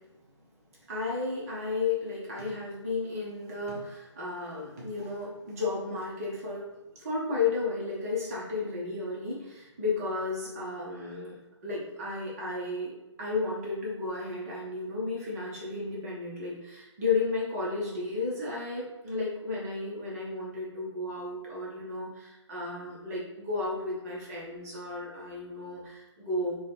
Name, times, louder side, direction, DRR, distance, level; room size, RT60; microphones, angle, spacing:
voice 1, 0.9-6.7 7.0-11.4 11.6-12.9 13.2-26.6, left 3 dB, 30° right, -4 dB, 1.0 m, -33 dB
5.2 x 2.4 x 3.4 m, 1.0 s
figure-of-eight pair, 145°, 16 cm